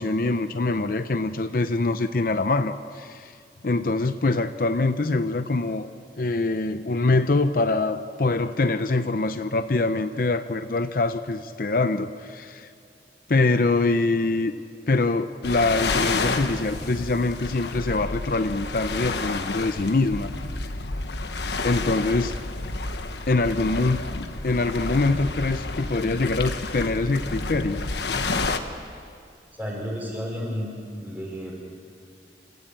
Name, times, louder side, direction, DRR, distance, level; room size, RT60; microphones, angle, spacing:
voice 1, 0.0-3.4 3.6-5.9 6.2-12.7 13.3-14.5 14.9-20.3 21.6-22.4 23.3-27.9 28.1-28.3, left 3 dB, 50° left, 10 dB, 0.6 m, -24 dB
sound 1, 15.4-28.6, left 3 dB, 75° left, 1.3 m, -30 dB
voice 2, 29.5-30.7 31.0-31.6, equal, 10° right, -2 dB, 5.5 m, -32 dB
28.0 x 15.0 x 8.8 m, 2.3 s
head